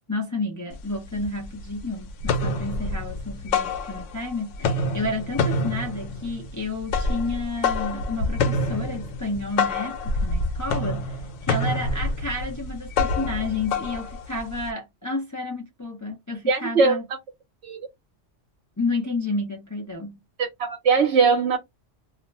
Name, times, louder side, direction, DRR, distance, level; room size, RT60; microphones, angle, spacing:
voice 1, 0.1-17.0 18.8-20.2, left 2 dB, 25° left, 0.3 m, -31 dB
sound 1, 0.7-0.8 1.2-1.8 2.1-4.3 4.5-14.7, left 2 dB, 85° left, 1.0 m, -27 dB
voice 2, 16.5-17.0 17.6-17.8 20.4-21.6, right 4 dB, 70° right, 1.0 m, -20 dB
2.4 x 2.1 x 3.3 m
omnidirectional pair, 1.2 m